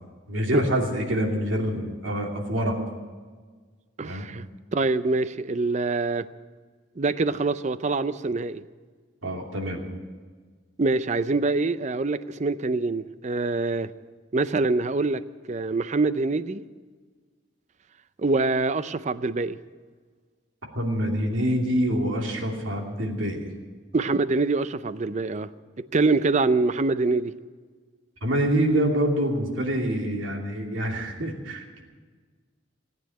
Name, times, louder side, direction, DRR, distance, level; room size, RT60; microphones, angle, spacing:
voice 1, 0.3-2.8 4.0-4.2 9.2-9.8 20.7-23.5 28.2-31.8, equal, 85° right, 2.7 m, -26 dB
voice 2, 4.0-4.4 4.7-6.3 7.0-8.6 10.8-13.9 14.3-15.2 15.5-16.6 18.2-19.6 23.9-25.5 25.8-27.3, right 3 dB, 35° right, 0.5 m, -25 dB
18.0 x 9.3 x 8.7 m
head